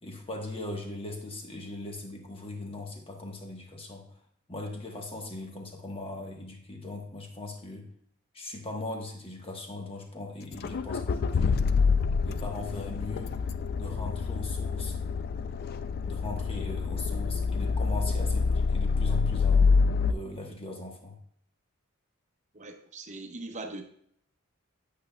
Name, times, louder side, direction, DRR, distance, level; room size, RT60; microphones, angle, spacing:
voice 1, 0.0-4.2 4.5-7.9 8.3-11.7 12.2-13.4 13.7-15.0 16.0-19.7 20.1-21.2, left 2 dB, 25° left, 2 dB, 1.1 m, -39 dB
Accelerating revving vroom, 10.5-20.1, left 5 dB, 45° left, 0.3 m, -27 dB
voice 2, 22.5-23.8, right 2 dB, 35° right, 5 dB, 0.8 m, -40 dB
8.4 x 8.4 x 2.2 m, 0.66 s
head